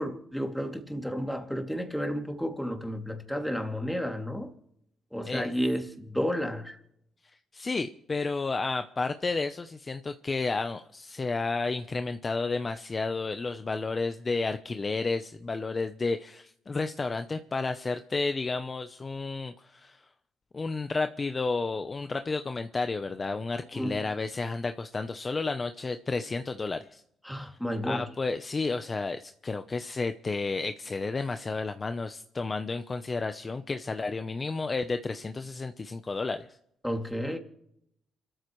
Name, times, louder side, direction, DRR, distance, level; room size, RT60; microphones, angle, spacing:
voice 1, 0.0-4.5 5.1-6.8 23.7-24.0 27.2-28.1 36.8-37.4, equal, ahead, 2.6 m, -32 dB
voice 2, 7.5-20.0 20.5-27.0 27.9-36.5, left 3 dB, 30° left, 0.8 m, -31 dB
28.0 x 14.0 x 3.2 m
cardioid pair, 90°, 0 cm